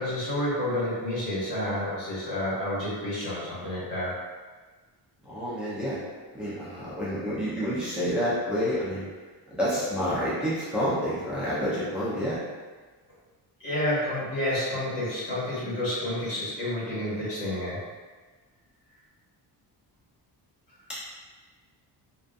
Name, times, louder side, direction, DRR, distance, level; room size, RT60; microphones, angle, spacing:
voice 1, 0.0-4.2 13.6-17.8, left 1 dB, 75° left, -9 dB, 1.3 m, -29 dB
voice 2, 5.2-6.0 6.3-9.1 9.5-12.4, equal, ahead, -11 dB, 0.6 m, -28 dB
2.6 x 2.4 x 2.3 m, 1.4 s
wide cardioid pair, 165°, 43 cm